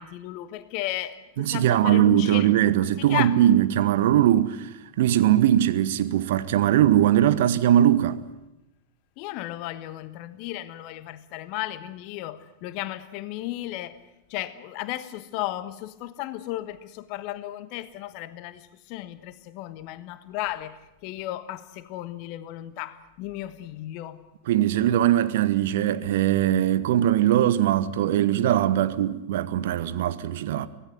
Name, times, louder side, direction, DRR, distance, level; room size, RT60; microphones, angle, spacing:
voice 1, 0.0-2.5 3.0-3.4 9.2-14.0 14.3-24.2, left 15 dB, 45° left, 1.3 m, -34 dB
voice 2, 1.4-4.7 5.0-8.2 24.5-30.7, right 12 dB, 55° right, 1.1 m, -21 dB
25.0 x 17.0 x 9.4 m
figure-of-eight pair, 90°, 0 cm